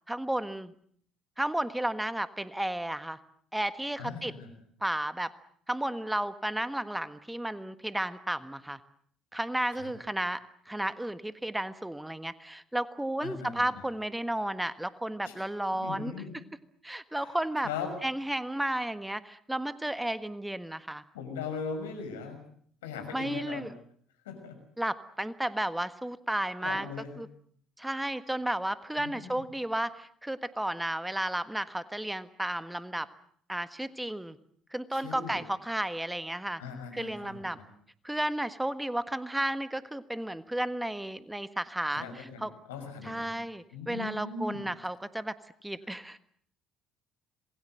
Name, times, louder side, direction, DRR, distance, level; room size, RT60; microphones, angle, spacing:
voice 1, 0.1-0.7 1.4-3.2 3.5-4.3 4.8-5.3 5.7-8.8 9.3-10.4 10.7-16.1 16.8-17.7 18.0-21.0 23.1-23.7 24.8-26.9 27.2-27.3 27.8-33.1 33.5-34.4 34.7-36.6 36.9-37.6 38.0-42.0 42.4-42.5 43.0-45.3 45.6-46.2, right 1 dB, 5° right, 12 dB, 1.5 m, -33 dB
voice 2, 4.0-4.5 9.7-9.9 13.2-13.7 15.2-15.3 15.7-16.3 17.1-17.3 17.6-17.9 21.1-22.4 22.8-23.7 24.2-24.6 26.6-27.1 29.0-29.4 34.9-35.4 36.6-37.6 41.9-43.3 43.7-44.6, left 5 dB, 85° left, 6 dB, 6.2 m, -39 dB
27.0 x 21.0 x 7.8 m, 0.62 s
hypercardioid pair, 60°, 0 cm